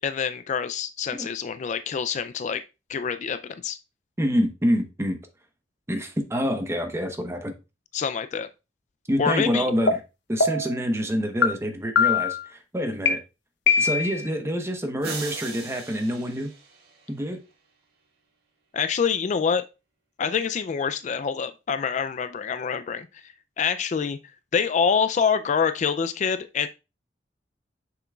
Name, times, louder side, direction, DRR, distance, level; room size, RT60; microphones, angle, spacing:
voice 1, 0.0-2.6 2.9-3.8 7.9-8.5 9.2-9.7 18.7-19.7 20.2-24.2 24.5-26.7, left 6 dB, 40° left, 12 dB, 0.3 m, -26 dB
voice 2, 4.2-5.2 5.9-7.5 9.1-10.0 10.3-13.2 13.8-16.5 17.1-17.4, equal, 15° right, 5 dB, 0.9 m, -26 dB
sound 1, 9.9-10.0 10.4-10.8 11.4-11.5 12.0-12.4 13.1-13.2 13.7-14.3, left 5 dB, 70° left, 0.8 m, -21 dB
sound 2, 15.0-17.4, right 4 dB, 60° right, 2.3 m, -39 dB
6.9 x 5.9 x 2.3 m, 0.27 s
head